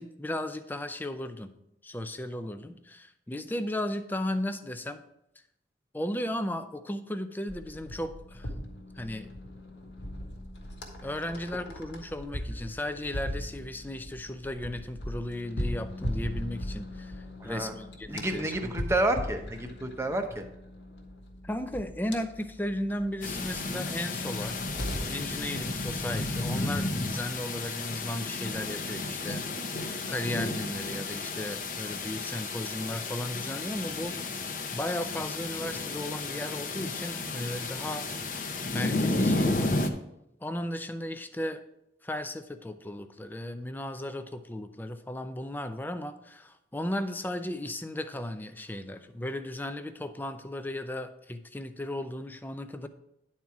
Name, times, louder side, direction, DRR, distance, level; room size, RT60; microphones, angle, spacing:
voice 1, 0.0-1.5 1.8-5.0 5.9-8.5 8.9-9.3 11.0-18.7 21.4-24.6 24.9-29.5 30.1-38.1 38.7-39.8 40.4-41.6 42.0-52.9, left 1 dB, 10° left, 10 dB, 0.4 m, -35 dB
sound 1, 7.5-26.8, equal, 90° left, 1.5 m, -39 dB
voice 2, 17.4-17.7 18.1-20.4, right 1 dB, 15° right, 5 dB, 0.7 m, -30 dB
sound 2, 23.2-39.9, left 2 dB, 50° left, 0.7 m, -32 dB
10.5 x 4.4 x 4.7 m, 0.81 s
head